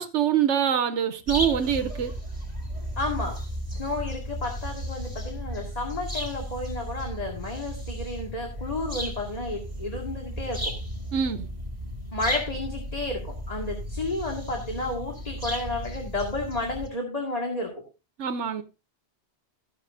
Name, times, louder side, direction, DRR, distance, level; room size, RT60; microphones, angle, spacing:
voice 1, 0.0-2.1 11.1-11.5 18.2-18.6, right 9 dB, 90° right, 1.2 m, -25 dB
sound 1, 1.3-16.9, equal, 35° right, 4.9 m, -35 dB
voice 2, 3.0-3.4 3.7-10.7 12.1-17.7, left 2 dB, 35° left, 2.2 m, -32 dB
14.5 x 10.5 x 2.7 m
omnidirectional pair, 1.2 m